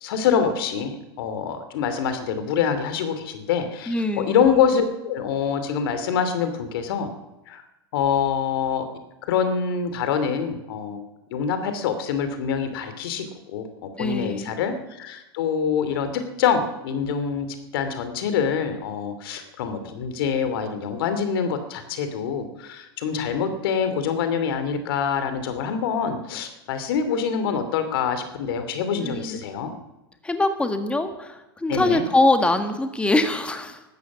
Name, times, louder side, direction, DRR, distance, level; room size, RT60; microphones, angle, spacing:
voice 1, 0.0-7.1 7.5-7.6 7.9-8.8 9.3-11.0 11.3-13.3 13.5-17.5 17.7-29.7 31.7-32.0, left 7 dB, 65° left, 9 dB, 2.7 m, -25 dB
voice 2, 3.9-4.4 14.0-14.5 29.0-29.4 30.2-33.8, left 2 dB, 10° left, 8 dB, 1.6 m, -23 dB
15.0 x 12.5 x 7.2 m, 0.98 s
hypercardioid pair, 105°, 13 cm